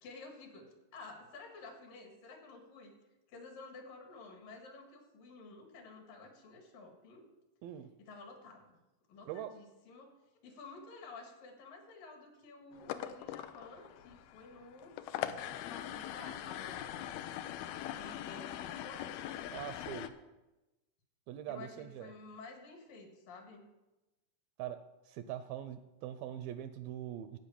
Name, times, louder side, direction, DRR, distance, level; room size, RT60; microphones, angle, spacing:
voice 1, 0.0-2.9 3.3-7.3 8.0-8.6 9.1-10.1 10.4-14.9 15.7-17.1 17.8-19.4 21.5-23.6, left 3 dB, 65° left, 3 dB, 3.2 m, -52 dB
sound 1, 12.7-20.1, left 12 dB, 80° left, 2.4 m, -42 dB
voice 2, 19.5-20.1 21.3-22.1 24.6-24.8 25.1-27.4, right 11 dB, 80° right, 10 dB, 2.2 m, -42 dB
14.0 x 5.2 x 8.5 m, 1.0 s
omnidirectional pair, 4.5 m